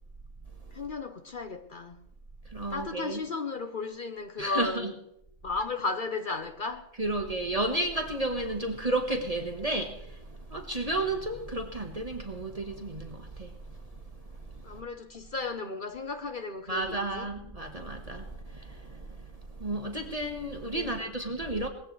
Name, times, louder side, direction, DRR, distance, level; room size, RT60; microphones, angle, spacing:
voice 1, 0.7-2.0 2.7-4.9 5.4-6.9 14.6-17.3 20.7-21.1 21.5-21.7, left 3 dB, 45° left, 1.0 m, -35 dB
voice 2, 2.4-3.2 4.4-4.9 7.0-14.8 16.7-21.7, right 2 dB, 30° right, 1.4 m, -33 dB
19.5 x 15.5 x 3.2 m
omnidirectional pair, 1.4 m